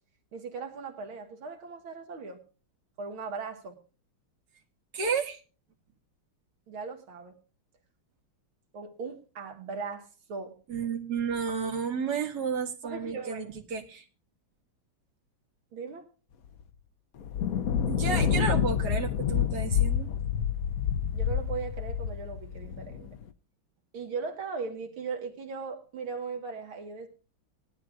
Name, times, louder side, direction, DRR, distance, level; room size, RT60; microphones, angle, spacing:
voice 1, 0.3-2.4 3.0-3.8 6.7-7.4 8.7-10.6 12.8-13.5 15.7-16.1 21.1-23.2 23.9-27.1, right 5 dB, 75° right, 5 dB, 2.3 m, -38 dB
voice 2, 4.9-5.4 10.7-14.1 17.9-20.1, right 5 dB, 50° right, 0 dB, 2.2 m, -31 dB
sound 1, 16.6-16.7 17.2-23.2, left 8 dB, 65° left, 0.8 m, -28 dB
19.5 x 11.5 x 2.4 m, 0.35 s
omnidirectional pair, 2.3 m